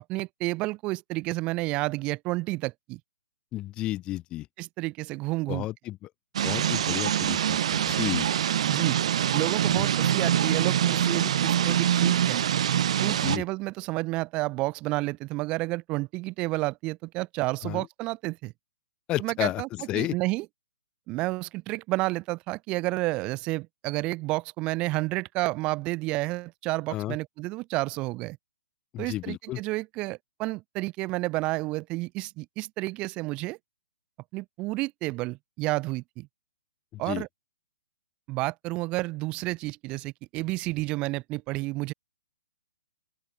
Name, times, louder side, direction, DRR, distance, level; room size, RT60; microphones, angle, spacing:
voice 1, 0.1-3.0 4.6-5.7 8.6-9.0 9.3-12.4 13.0-18.5 19.2-19.7 19.9-20.5 21.1-28.4 29.0-33.6 34.3-36.3 37.0-37.3 38.3-41.9, right 21 dB, 30° right, 0.8 m, -30 dB
voice 2, 3.5-4.5 5.5-6.1 6.4-8.3 9.8-9.9 13.2-13.4 17.6-17.8 19.1-20.2 26.9-27.2 28.9-29.6 36.9-37.2, left 15 dB, 25° left, 1.8 m, -32 dB
sound 1, 6.3-13.4, right 10 dB, 55° right, 0.4 m, -24 dB
open air
figure-of-eight pair, 130°, 4 cm